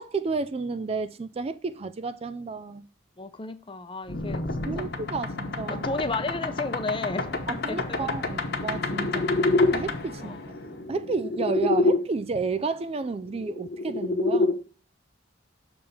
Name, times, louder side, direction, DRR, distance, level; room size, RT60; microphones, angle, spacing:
voice 1, 0.0-2.9 4.7-5.8 7.5-9.3 9.7-10.4 10.9-14.5, right 4 dB, 30° right, 0.3 m, -31 dB
voice 2, 3.2-4.4 4.7-4.9 5.7-8.1 10.2-10.4, left 3 dB, 25° left, 0.6 m, -33 dB
sound 1, 4.1-12.0 13.3-14.5, left 2 dB, 55° left, 1.1 m, -27 dB
6.9 x 3.5 x 5.4 m
head